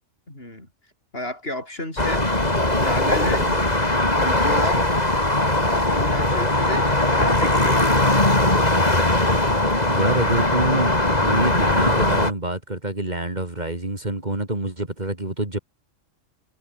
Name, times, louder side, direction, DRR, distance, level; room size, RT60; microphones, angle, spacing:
voice 1, 0.3-0.7 1.1-3.5 4.1-4.8 5.6-7.8, left 1 dB, 50° left, 7.1 m, -32 dB
sound 1, 2.0-12.3, left 1 dB, 30° left, 4.1 m, -20 dB
voice 2, 3.2-3.6 9.8-10.9 11.2-15.6, right 2 dB, 35° right, 3.4 m, -26 dB
omnidirectional pair, 1.3 m